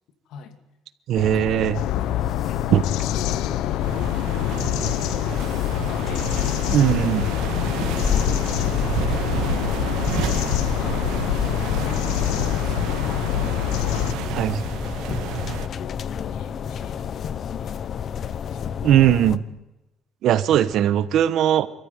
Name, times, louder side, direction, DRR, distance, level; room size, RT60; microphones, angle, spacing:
voice 1, 0.3-0.6 1.2-1.5 1.8-2.6 3.1-4.1 4.4-5.3 5.8-13.3 13.8-14.5 15.7-17.8 18.1-18.7 19.5-19.6, left 7 dB, 65° left, 7 dB, 2.6 m, -41 dB
sound 1, 1.1-19.4, left 8 dB, 40° left, 0.8 m, -30 dB
voice 2, 1.1-1.8 2.7-2.8 6.7-7.2 14.3-14.6 18.8-19.4 20.2-21.7, right 11 dB, 55° right, 14 dB, 1.1 m, -19 dB
sound 2, 1.7-14.1, left 14 dB, 85° left, 0.8 m, -26 dB
sound 3, 3.8-15.7, right 10 dB, 90° right, 2.0 m, -31 dB
26.5 x 14.0 x 9.3 m, 0.95 s
cardioid pair, 165°, 0 cm